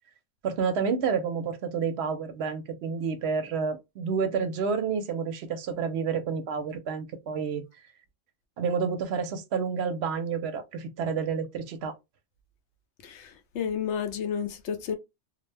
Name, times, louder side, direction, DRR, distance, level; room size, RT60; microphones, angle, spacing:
voice 1, 0.4-7.6 8.6-11.9, right 6 dB, 65° right, 0.8 m, -29 dB
voice 2, 13.0-15.0, left 7 dB, 75° left, 0.9 m, -31 dB
2.5 x 2.1 x 3.2 m
omnidirectional pair, 1.2 m